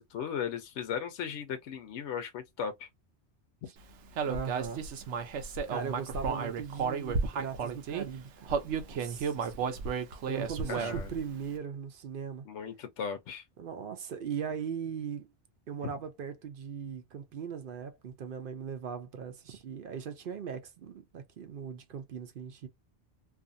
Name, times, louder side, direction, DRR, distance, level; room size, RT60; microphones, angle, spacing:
voice 1, 0.0-2.9 10.7-11.1 12.5-13.4, left 7 dB, 90° left, 0.9 m, -37 dB
voice 2, 4.2-4.8 5.7-12.4 13.6-15.3 15.7-22.7, right 7 dB, 60° right, 0.6 m, -39 dB
Human voice, 4.2-8.0 8.5-11.2, right 5 dB, 80° right, 0.9 m, -33 dB
2.5 x 2.4 x 2.5 m
omnidirectional pair, 1.2 m